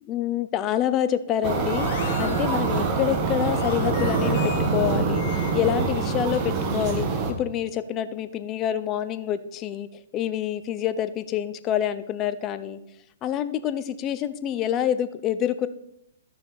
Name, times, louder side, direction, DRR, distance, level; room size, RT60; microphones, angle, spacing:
voice 1, 0.0-9.9 10.1-12.8 13.2-15.7, left 10 dB, 25° left, 13 dB, 0.6 m, -27 dB
sound 1, 1.4-6.3, left 7 dB, 50° left, 1.6 m, -37 dB
sound 2, 1.4-7.3, right 4 dB, 30° right, 1.4 m, -25 dB
13.0 x 6.0 x 4.1 m, 0.81 s
hypercardioid pair, 135°, 0 cm